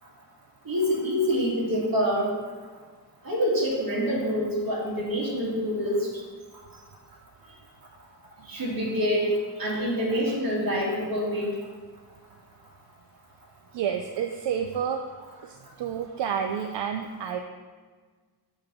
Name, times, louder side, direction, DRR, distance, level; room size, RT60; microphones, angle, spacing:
voice 1, 0.7-2.3 3.2-6.1 8.5-9.3 9.6-11.5, equal, 55° right, -5 dB, 2.0 m, -26 dB
voice 2, 13.7-15.0 15.4-17.4, right 8 dB, 80° right, 5 dB, 0.5 m, -30 dB
7.2 x 3.3 x 5.9 m, 1.5 s
wide cardioid pair, 145°, 43 cm